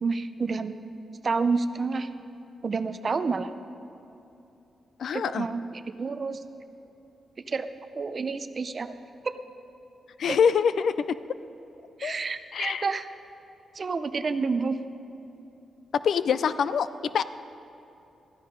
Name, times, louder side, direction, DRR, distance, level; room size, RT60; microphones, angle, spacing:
voice 1, 0.0-0.8 1.2-2.1 2.6-3.5 5.1-6.4 7.5-7.7 7.9-8.9 9.2-9.3 10.3-10.4 12.0-13.1 13.7-14.8, right 4 dB, 35° right, 11 dB, 0.5 m, -29 dB
voice 2, 5.0-5.5 10.2-11.1 12.0-12.1 12.5-12.8 15.9-16.9 17.1-17.2, left 7 dB, 65° left, 14 dB, 0.4 m, -24 dB
15.5 x 14.0 x 3.8 m, 2.9 s
wide cardioid pair, 140°, 0 cm